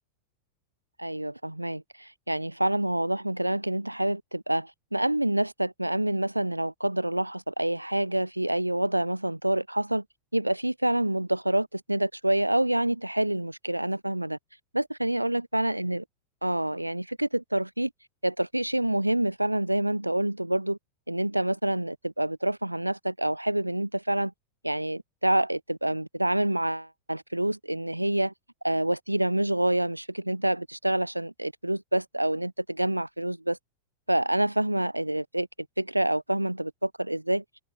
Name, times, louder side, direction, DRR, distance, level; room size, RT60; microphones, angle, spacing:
voice 1, 1.0-10.0 10.3-14.4 14.7-16.0 16.4-17.9 18.2-20.8 21.1-24.3 24.6-28.3 28.6-33.6 34.1-35.5 35.8-37.4, right 1 dB, 85° right, 6.6 m, -27 dB
figure-of-eight pair, 90°, 0 cm